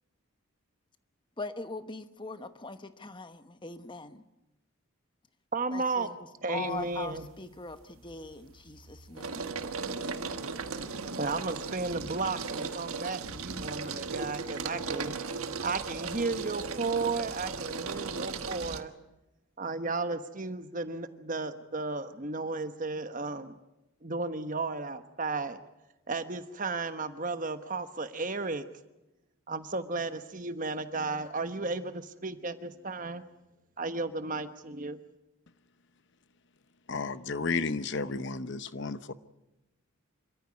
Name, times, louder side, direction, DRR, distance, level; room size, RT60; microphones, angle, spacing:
voice 1, 1.4-4.2 5.7-6.1 6.5-9.4, left 3 dB, 20° left, 10 dB, 1.0 m, -41 dB
voice 2, 5.5-6.1 6.4-7.3 11.2-15.1 15.6-18.9 19.6-23.6 24.0-25.6 26.1-28.6 29.5-33.3 33.8-35.0, right 3 dB, 35° right, 10 dB, 1.2 m, -34 dB
sound 1, 6.8-7.3 7.7-18.8, right 4 dB, 80° right, 1.5 m, -37 dB
voice 3, 36.9-39.1, left 4 dB, 55° left, 13 dB, 0.9 m, -32 dB
27.0 x 14.0 x 9.7 m, 0.97 s
head